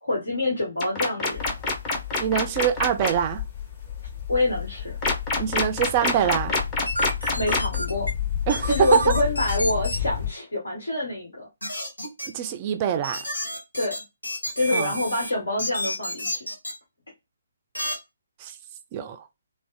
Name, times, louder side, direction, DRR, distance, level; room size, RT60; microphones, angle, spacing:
voice 1, 0.0-1.5 4.3-4.9 7.4-8.1 8.7-11.5 13.7-13.9 14.6-16.5, left 2 dB, 70° left, 1.4 m, -26 dB
sound 1, 0.8-3.1 5.0-7.8, left 2 dB, 20° left, 0.8 m, -25 dB
sound 2, 1.3-10.3, left 9 dB, 40° left, 2.0 m, -32 dB
voice 2, 2.2-3.4 5.4-6.6 8.5-9.0 12.3-13.2 14.7-14.9 18.4-18.6 18.9-19.2, right 9 dB, 30° right, 0.3 m, -24 dB
sound 3, 6.9-8.1 8.5-10.0 11.6-12.3 13.0-15.3 15.6-16.7 17.7-18.0, equal, 85° left, 1.3 m, -30 dB
3.5 x 2.2 x 2.3 m
figure-of-eight pair, 140°, 0 cm